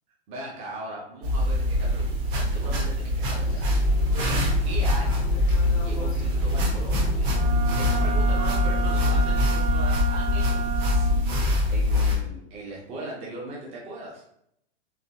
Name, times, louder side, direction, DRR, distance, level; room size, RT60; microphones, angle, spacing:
voice 1, 0.3-5.2 5.8-7.5 7.8-14.2, right 2 dB, 15° right, -3 dB, 0.6 m, -39 dB
sound 1, 1.2-12.1, left 1 dB, 45° right, 1.2 m, -24 dB
sound 2, 3.4-9.4, right 1 dB, 30° left, 0.4 m, -32 dB
Wind instrument woodwind instrument, 7.3-11.3, right 4 dB, 70° right, 0.7 m, -32 dB
3.9 x 3.5 x 2.8 m, 0.73 s
supercardioid pair, 160°, 36 cm